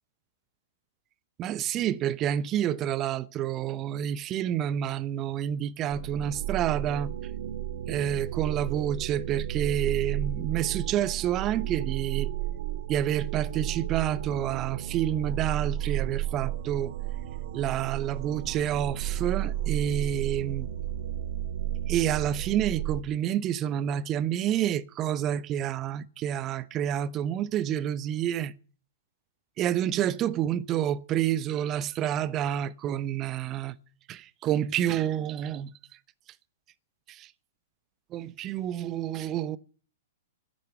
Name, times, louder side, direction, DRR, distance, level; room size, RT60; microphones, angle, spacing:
voice 1, 1.4-7.1 7.9-12.3 12.9-16.9 17.5-20.7 21.9-28.5 29.6-33.7 34.1-35.7 37.1-37.3 38.1-39.6, right 10 dB, 30° right, 0.8 m, -29 dB
sound 1, 5.9-23.0, right 12 dB, 50° right, 1.1 m, -33 dB
13.0 x 10.5 x 8.9 m
figure-of-eight pair, 105°, 0 cm